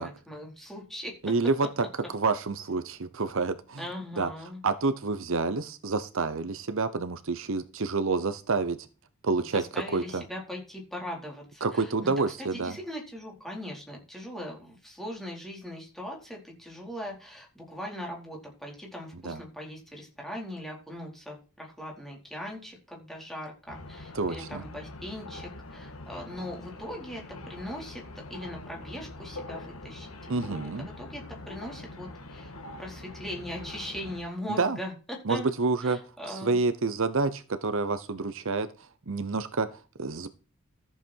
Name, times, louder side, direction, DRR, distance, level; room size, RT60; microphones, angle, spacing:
voice 1, 0.0-1.3 3.8-4.6 9.4-12.1 12.4-32.5 32.8-35.5 35.8-36.6, equal, ahead, -1 dB, 4.5 m, -40 dB
voice 2, 1.2-1.7 2.1-3.8 4.2-4.3 4.6-8.8 9.2-9.6 9.9-10.2 11.6-12.8 19.2-19.4 24.1-24.6 30.3-30.9 34.6-34.8 35.2-36.0 36.2-40.3, right 3 dB, 65° right, 12 dB, 0.9 m, -28 dB
sound 1, 23.7-34.2, left 2 dB, 75° left, 1.9 m, -43 dB
14.0 x 7.9 x 4.6 m, 0.34 s
head